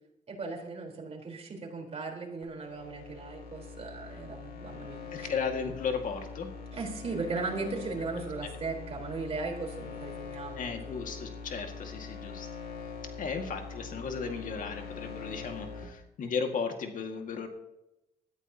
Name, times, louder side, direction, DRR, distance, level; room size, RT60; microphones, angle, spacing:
voice 1, 0.3-5.3 6.7-10.7, right 3 dB, 45° right, 1 dB, 4.1 m, -37 dB
sound 1, 2.4-15.8, left 5 dB, 85° left, 2.7 m, -43 dB
voice 2, 5.1-6.5 10.6-12.5 13.2-17.5, left 5 dB, 65° left, 4 dB, 2.0 m, -35 dB
19.5 x 13.5 x 2.9 m, 0.89 s
cardioid pair, 90°, 15 cm